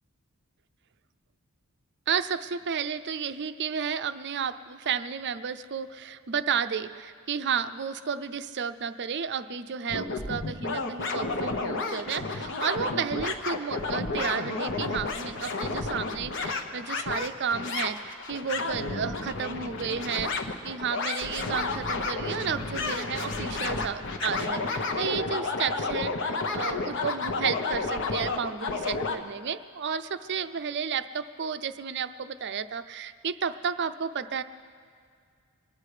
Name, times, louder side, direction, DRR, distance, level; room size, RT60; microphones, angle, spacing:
voice 1, 2.1-34.4, right 7 dB, 50° right, 11 dB, 0.5 m, -32 dB
sound 1, 9.9-29.2, left 3 dB, 55° left, 1.0 m, -31 dB
24.5 x 9.5 x 4.9 m, 2.2 s
head